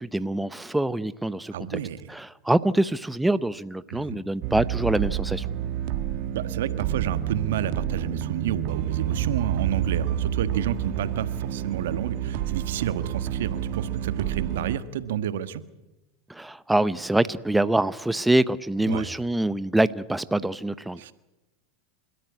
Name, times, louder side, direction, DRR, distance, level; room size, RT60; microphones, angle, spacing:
voice 1, 0.0-1.8 2.1-5.5 16.3-21.1, right 1 dB, 5° right, 15 dB, 0.7 m, -25 dB
voice 2, 1.5-2.1 3.9-4.2 6.3-15.6 18.9-19.1 21.0-21.1, right 10 dB, 80° right, 12 dB, 1.3 m, -30 dB
sound 1, 4.4-14.8, right 10 dB, 60° right, 1.5 m, -29 dB
30.0 x 13.5 x 9.7 m, 1.0 s
hypercardioid pair, 105°, 0 cm